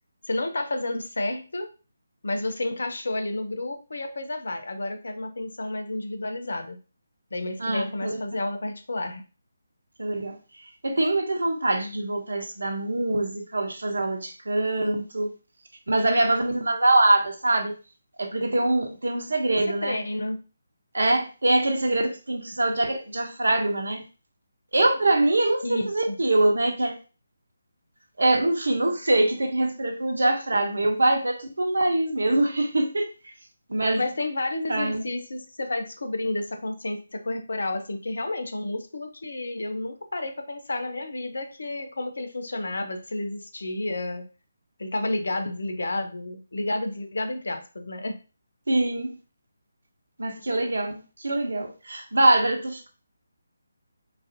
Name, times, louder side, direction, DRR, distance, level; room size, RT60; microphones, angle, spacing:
voice 1, 0.3-1.7 2.2-6.8 7.3-9.2 19.4-19.5 19.8-20.4 25.6-26.2 34.0-44.2 44.8-48.2, left 2 dB, 65° left, 0.6 m, -31 dB
voice 2, 7.6-8.2 10.0-15.3 15.9-17.7 18.2-20.0 20.9-24.0 24.7-27.0 28.2-33.3 33.7-34.0 34.7-35.0 48.7-49.1 50.2-52.9, right 2 dB, 70° right, 0.8 m, -24 dB
3.9 x 2.5 x 2.7 m
figure-of-eight pair, 150°, 0 cm